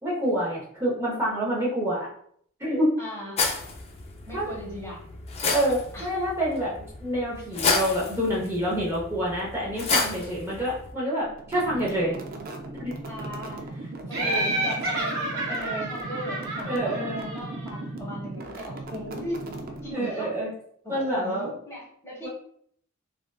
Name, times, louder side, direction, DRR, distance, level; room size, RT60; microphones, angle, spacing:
voice 1, 0.0-2.1 2.6-3.0 4.3-4.5 5.5-6.7 7.0-12.2 12.7-12.9 14.2-14.5 15.5-15.9 16.7-17.3 19.9-20.5 20.9-21.5 22.2-22.3, equal, 15° right, -7 dB, 0.7 m, -27 dB
voice 2, 3.0-3.4 4.3-5.0 5.9-6.2 13.0-13.6 14.1-19.5 19.8-20.3 20.8-22.3, equal, 15° left, -4 dB, 0.9 m, -38 dB
sound 1, 3.4-10.9, left 4 dB, 30° left, 0.4 m, -31 dB
sound 2, 11.4-20.4, right 2 dB, 45° right, 0.4 m, -38 dB
Laughter, 14.1-17.7, right 1 dB, 70° right, 1.2 m, -30 dB
3.5 x 2.4 x 2.2 m, 0.64 s
head